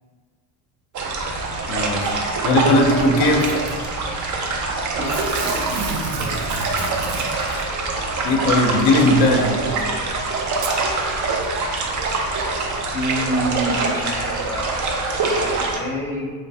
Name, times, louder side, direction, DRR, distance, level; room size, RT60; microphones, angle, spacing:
sound 1, 0.9-15.8, right 3 dB, 40° right, 0.6 m, -24 dB
voice 1, 1.7-2.1 2.4-3.5 8.2-9.6, left 1 dB, 80° left, 2 dB, 0.7 m, -18 dB
Packing tape duct tape / Tearing, 3.4-3.9 5.1-7.6 8.8-8.9 9.8-9.9 10.5-10.8 11.4-11.5, right 4 dB, 85° right, 0.6 m, -31 dB
voice 2, 4.9-5.3 12.9-16.4, equal, 5° left, -4 dB, 0.6 m, -28 dB
3.1 x 2.9 x 2.7 m, 1.5 s
supercardioid pair, 105°, 45 cm